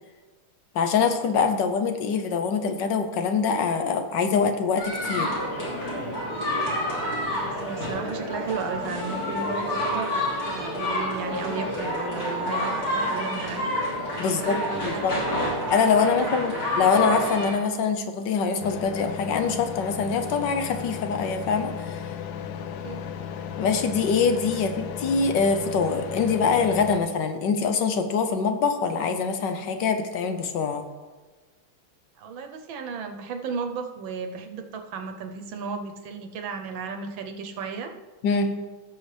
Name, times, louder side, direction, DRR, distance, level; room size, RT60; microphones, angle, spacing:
voice 1, 0.7-5.3 14.2-15.2 15.7-22.1 23.6-30.8 38.2-38.5, left 5 dB, 65° left, 7 dB, 1.2 m, -24 dB
sound 1, 4.8-17.5, left 1 dB, 45° left, 3.6 m, -28 dB
voice 2, 7.3-13.6 14.2-15.4 16.0-16.4 22.6-23.0 32.2-37.9, right 5 dB, 70° right, 5 dB, 1.4 m, -35 dB
sound 2, 18.6-27.0, left 8 dB, 85° left, 0.8 m, -35 dB
16.5 x 7.0 x 3.3 m, 1.3 s
omnidirectional pair, 2.3 m